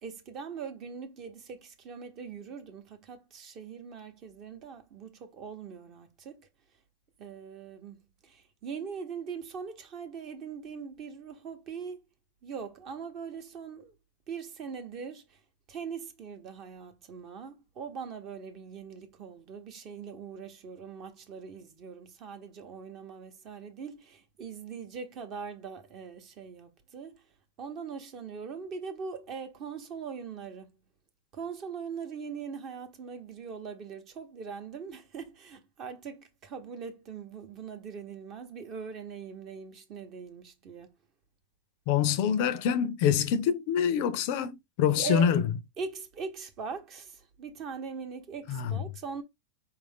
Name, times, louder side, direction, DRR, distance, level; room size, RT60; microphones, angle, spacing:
voice 1, 0.0-6.5 7.2-12.0 12.4-13.9 14.3-15.4 15.7-27.2 27.6-30.7 31.3-40.9 44.9-45.3 45.8-49.2, right 6 dB, 30° right, 0.8 m, -41 dB
voice 2, 41.9-45.4 48.5-48.8, left 8 dB, 45° left, 0.5 m, -26 dB
4.5 x 2.5 x 3.5 m
supercardioid pair, 155°, 0 cm